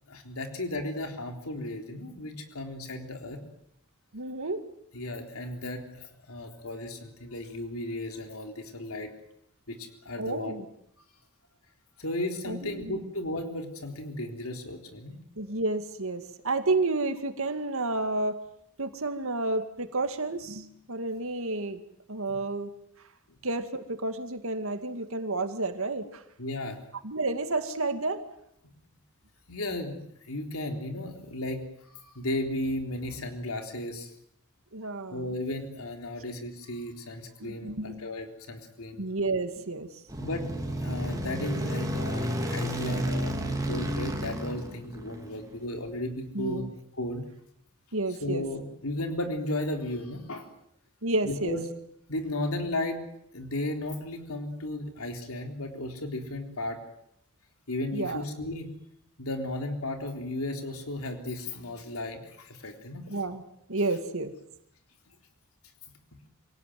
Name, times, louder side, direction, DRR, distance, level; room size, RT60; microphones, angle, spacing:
voice 1, 0.1-3.4 4.9-9.1 9.7-10.5 12.0-15.2 26.4-26.8 29.5-34.1 35.1-39.0 40.2-40.5 40.8-46.7 47.0-47.2 48.2-50.5 51.2-51.6 52.1-53.0 53.3-56.8 57.7-58.7 59.2-63.0, left 1 dB, 75° left, 4 dB, 3.8 m, -35 dB
voice 2, 4.1-4.6 10.2-10.7 12.4-13.0 15.4-18.4 18.8-21.8 22.1-22.7 23.4-26.2 27.0-28.2 34.7-35.3 37.4-38.1 39.0-39.9 46.3-46.7 47.9-48.4 51.0-51.6 57.9-58.2 63.1-63.4 63.7-64.3, right 2 dB, 65° right, 8 dB, 2.3 m, -30 dB
sound 1, 40.1-45.6, equal, 15° right, 4.0 m, -31 dB
26.5 x 18.0 x 9.5 m, 0.74 s
head